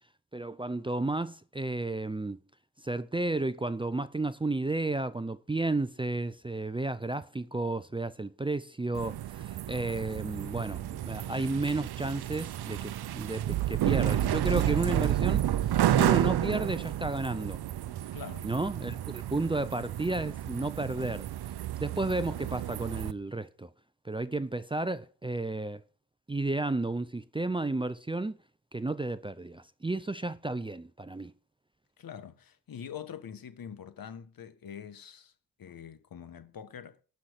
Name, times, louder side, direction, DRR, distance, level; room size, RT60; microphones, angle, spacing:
voice 1, 0.3-2.4 2.8-15.4 15.9-17.6 18.4-21.3 21.8-23.7 24.0-25.8 26.3-28.4 28.7-31.3, right 2 dB, 15° right, 0.5 m, -32 dB
sound 1, 9.0-23.1, right 12 dB, 75° right, 0.7 m, -31 dB
voice 2, 18.1-18.5 32.0-35.3 35.6-37.0, left 8 dB, 60° left, 1.3 m, -44 dB
12.5 x 5.8 x 8.0 m
cardioid pair, 85°, 39 cm